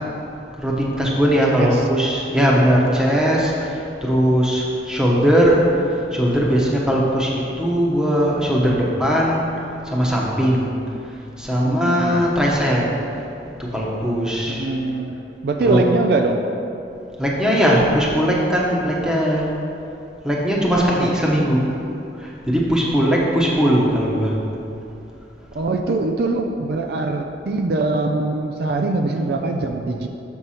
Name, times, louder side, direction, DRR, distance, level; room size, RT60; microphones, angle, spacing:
voice 1, 0.6-5.8 6.1-9.5 9.8-10.7 11.4-12.9 13.6-14.7 15.6-15.8 17.2-19.5 20.2-21.7 22.2-24.4, equal, 5° right, -4 dB, 1.0 m, -19 dB
voice 2, 11.6-12.2 14.5-15.1 15.4-16.4 20.8-21.4 25.5-30.1, right 2 dB, 60° right, 3 dB, 0.4 m, -22 dB
6.7 x 6.3 x 4.3 m, 2.7 s
head